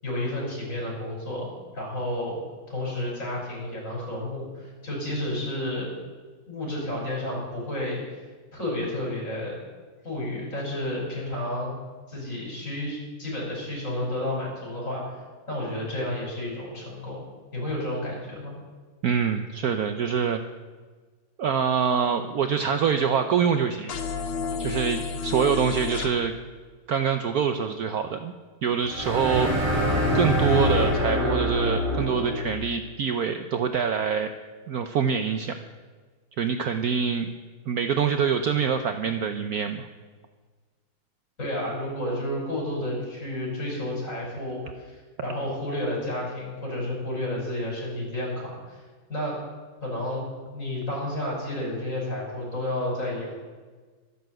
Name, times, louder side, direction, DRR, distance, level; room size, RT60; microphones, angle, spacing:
voice 1, 0.0-2.4 2.7-5.9 6.5-8.3 8.5-9.6 10.0-11.8 12.1-15.2 15.5-17.2 17.5-18.5 41.4-48.8 49.1-49.4 49.8-50.3 50.5-53.3, left 1 dB, 35° left, -3 dB, 5.8 m, -31 dB
voice 2, 19.0-20.4 21.4-24.0 24.6-26.3 26.9-28.3 28.6-29.8 30.1-34.3 34.7-35.5 36.4-37.3 37.7-39.9, right 7 dB, 80° right, 7 dB, 0.8 m, -25 dB
sound 1, 23.9-26.1, left 5 dB, 75° left, 1.9 m, -31 dB
sound 2, 28.8-32.6, equal, 15° right, 4.5 m, -25 dB
13.0 x 11.0 x 7.8 m, 1.4 s
omnidirectional pair, 2.4 m